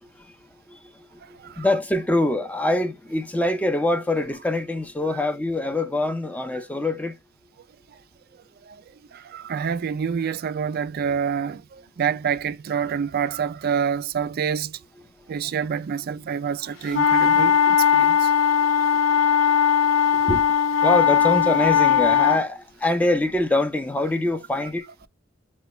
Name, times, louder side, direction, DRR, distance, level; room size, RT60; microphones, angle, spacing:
voice 1, 0.7-7.2 17.5-17.6 18.0-24.9, left 2 dB, 5° left, 0.5 m, -25 dB
voice 2, 9.1-14.8 15.3-18.3 18.7-18.8 19.3-19.6, right 7 dB, 45° right, 0.3 m, -27 dB
sound 1, 16.9-22.4, left 8 dB, 65° left, 0.5 m, -19 dB
5.7 x 2.2 x 3.0 m
head